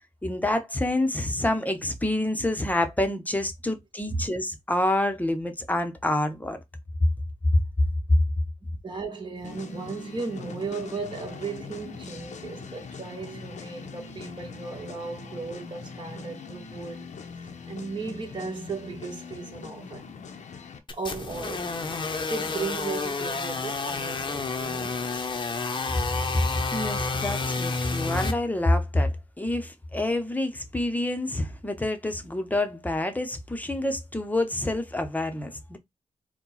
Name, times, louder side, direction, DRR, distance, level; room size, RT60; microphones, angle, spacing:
voice 1, 0.2-6.6 7.5-7.6 26.7-35.8, left 1 dB, 15° left, 0.9 m, -27 dB
voice 2, 8.8-17.1 17.7-20.1 20.9-21.8 22.3-25.0, right 4 dB, 40° right, 1.5 m, -35 dB
sound 1, 9.4-20.8, left 5 dB, 80° left, 0.8 m, -42 dB
sound 2, 20.9-28.3, left 4 dB, 40° left, 0.8 m, -30 dB
4.4 x 2.3 x 4.1 m
wide cardioid pair, 105°, 12 cm